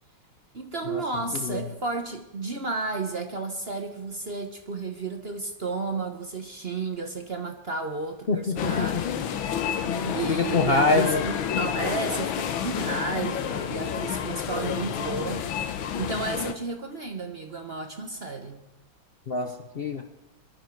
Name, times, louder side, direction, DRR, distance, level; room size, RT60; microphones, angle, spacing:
voice 1, 0.5-9.3 9.6-9.7 10.1-15.5 16.0-18.6, right 3 dB, 40° right, 5 dB, 1.0 m, -32 dB
voice 2, 1.3-1.6 8.3-9.0 9.8-11.2 19.3-20.0, left 3 dB, 60° left, 5 dB, 0.6 m, -26 dB
sound 1, 8.6-16.5, left 8 dB, 80° left, 1.7 m, -29 dB
22.0 x 12.0 x 4.6 m, 0.97 s
omnidirectional pair, 2.2 m